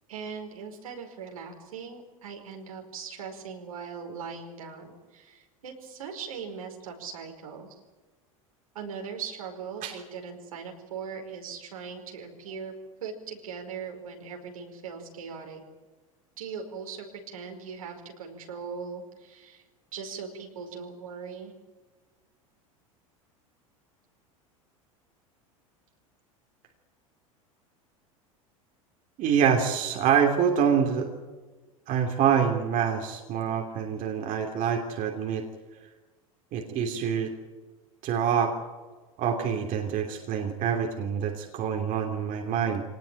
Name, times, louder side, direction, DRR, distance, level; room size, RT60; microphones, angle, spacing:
voice 1, 0.1-7.7 8.7-12.7 13.0-15.6 16.4-19.6 19.9-21.5, right 6 dB, 80° right, 2 dB, 5.1 m, -40 dB
voice 2, 29.2-31.1 31.9-35.4 36.5-37.3 38.0-38.5 39.2-42.8, right 7 dB, 50° right, 3 dB, 3.1 m, -26 dB
24.0 x 19.0 x 9.1 m, 1.3 s
hypercardioid pair, 85°, 18 cm